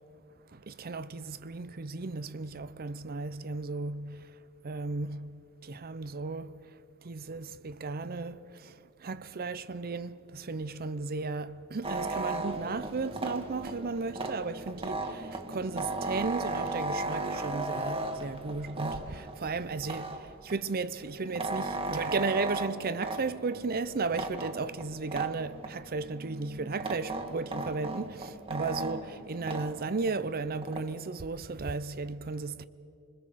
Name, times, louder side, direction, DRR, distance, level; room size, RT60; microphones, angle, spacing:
voice 1, 0.5-4.3 4.6-5.3 5.6-6.6 7.0-32.6, right 3 dB, 45° right, 0.6 m, -35 dB
sound 1, 11.8-20.5 21.0-30.9, right 2 dB, 25° right, 1.5 m, -36 dB
27.0 x 21.0 x 7.6 m
head